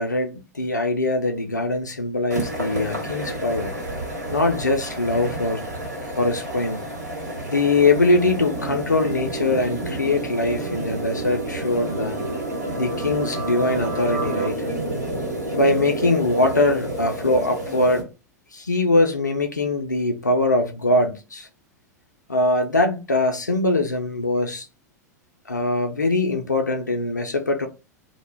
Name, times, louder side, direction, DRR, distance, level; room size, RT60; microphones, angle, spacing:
voice 1, 0.0-3.7 4.3-5.6 6.0-6.8 7.5-12.2 12.8-14.7 15.5-18.1 18.5-21.5 22.3-24.7 25.5-27.7, left 2 dB, 85° left, 0.4 m, -22 dB
sound 1, 2.3-18.0, right 1 dB, 75° right, 1.1 m, -30 dB
sound 2, 9.1-14.5, right 4 dB, 50° right, 1.0 m, -36 dB
2.2 x 2.1 x 3.1 m
figure-of-eight pair, 90°, 9 cm